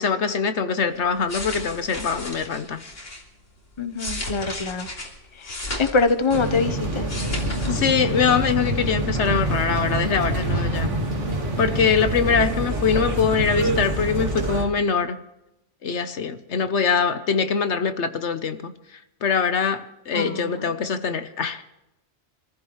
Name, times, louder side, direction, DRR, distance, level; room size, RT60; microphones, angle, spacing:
voice 1, 0.0-2.8 7.7-10.9 11.6-15.2 15.8-18.7 19.2-21.6, left 6 dB, 70° left, 1.2 m, -23 dB
sound 1, 1.0-3.2 3.8-6.7 6.9-7.7 8.0-8.2, left 1 dB, 90° left, 3.4 m, -34 dB
voice 2, 3.8-4.9 5.8-7.1 7.7-7.8 20.1-20.7, left 4 dB, 25° left, 1.0 m, -24 dB
sound 2, 6.3-14.6, right 1 dB, 75° right, 2.8 m, -26 dB
25.5 x 14.5 x 3.2 m
omnidirectional pair, 1.2 m